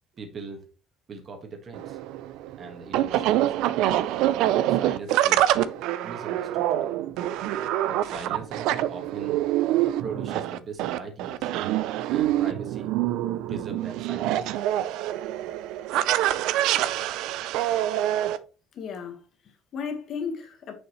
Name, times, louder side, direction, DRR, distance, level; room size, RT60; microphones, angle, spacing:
voice 1, 0.1-0.6 1.1-2.0 2.6-3.8 4.6-5.5 6.0-6.9 7.9-9.4 10.0-11.5 12.0-12.9 13.5-14.5, right 3 dB, 40° right, 1.6 m, -40 dB
sound 1, 1.7-18.4, right 13 dB, 80° right, 0.3 m, -25 dB
voice 2, 18.7-20.7, left 6 dB, 55° left, 1.4 m, -35 dB
6.5 x 5.3 x 3.1 m
cardioid pair, 115°, 0 cm